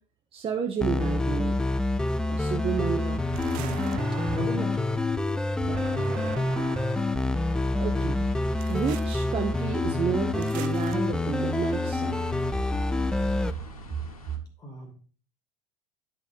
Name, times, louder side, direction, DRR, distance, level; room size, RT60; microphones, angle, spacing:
voice 1, 0.3-1.6 2.3-3.2 3.6-4.0 5.7-5.8 7.7-8.3 8.7-12.3, right 7 dB, 30° right, 3 dB, 0.9 m, -31 dB
sound 1, 0.8-13.5, left 2 dB, 5° left, 0.4 m, -27 dB
sound 2, 2.4-14.4, equal, 85° left, 1.3 m, -46 dB
sound 3, 3.3-4.8 5.7-7.2 8.6-9.1 10.4-11.0, right 14 dB, 50° right, 0.5 m, -40 dB
voice 2, 4.3-5.0 14.6-14.9, right 1 dB, 20° left, 3 dB, 2.1 m, -36 dB
10.5 x 4.4 x 3.8 m, 0.41 s
hypercardioid pair, 75°, 18 cm